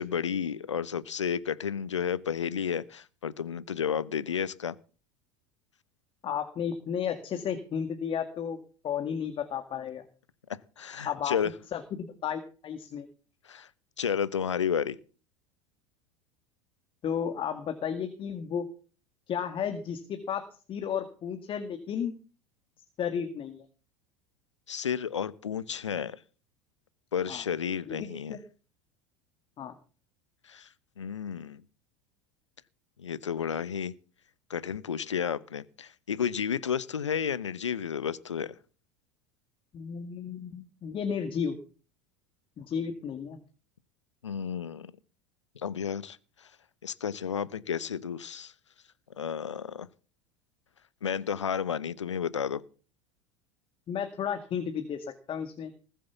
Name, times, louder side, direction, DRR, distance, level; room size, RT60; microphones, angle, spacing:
voice 1, 0.0-4.8 10.8-11.5 13.5-13.7 14.0-15.0 24.7-26.2 27.1-28.4 30.5-30.7 31.0-31.6 33.0-33.9 34.5-38.5 44.2-44.9 45.6-46.2 46.8-48.5 49.2-49.9 51.0-52.6, left 7 dB, 85° left, 0.9 m, -32 dB
voice 2, 6.2-8.6 8.8-10.0 11.0-11.4 11.7-11.8 12.2-13.1 17.0-18.7 19.3-22.1 23.0-23.7 27.3-27.4 27.9-28.4 29.6-29.7 39.7-41.6 42.6-43.4 53.9-55.7, left 7 dB, 35° left, 2.0 m, -33 dB
20.0 x 7.4 x 7.1 m
figure-of-eight pair, 80°, 15 cm